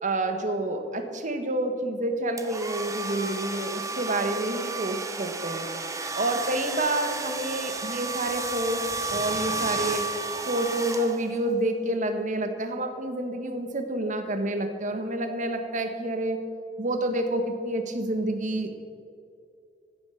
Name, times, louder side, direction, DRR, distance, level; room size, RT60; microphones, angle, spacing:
voice 1, 0.0-5.7 6.1-10.1 10.5-16.4 16.8-18.8, right 1 dB, 45° right, 7 dB, 1.4 m, -28 dB
sound 1, 2.4-11.5, right 3 dB, 20° right, 0.9 m, -32 dB
15.5 x 8.4 x 7.0 m, 2.5 s
head